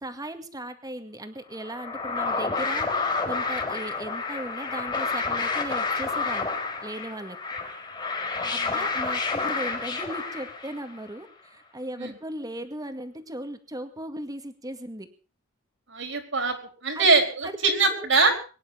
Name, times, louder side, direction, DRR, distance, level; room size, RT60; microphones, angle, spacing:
voice 1, 0.0-2.9 3.3-6.5 6.8-7.4 8.5-11.3 11.7-15.1 17.0-17.2 17.4-17.6, right 1 dB, 20° right, 8 dB, 2.1 m, -37 dB
sound 1, 1.6-11.0, left 4 dB, 25° left, 4.2 m, -29 dB
voice 2, 8.4-8.9 12.0-12.2 15.9-16.6 16.8-18.3, right 3 dB, 65° right, 6 dB, 4.2 m, -23 dB
23.5 x 10.5 x 5.7 m, 0.38 s
head